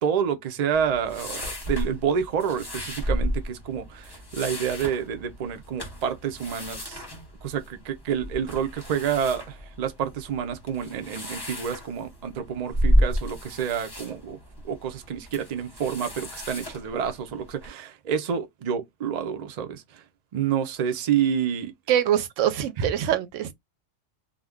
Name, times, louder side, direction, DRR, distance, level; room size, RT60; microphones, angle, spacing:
voice 1, 0.0-7.0 7.4-14.4 14.7-19.8 20.3-21.7 22.8-22.9, right 8 dB, 55° right, 0.4 m, -28 dB
sound 1, 0.7-17.7, equal, 20° left, 0.9 m, -32 dB
voice 2, 21.9-23.5, right 10 dB, 80° right, 0.9 m, -24 dB
2.4 x 2.1 x 3.4 m
omnidirectional pair, 1.3 m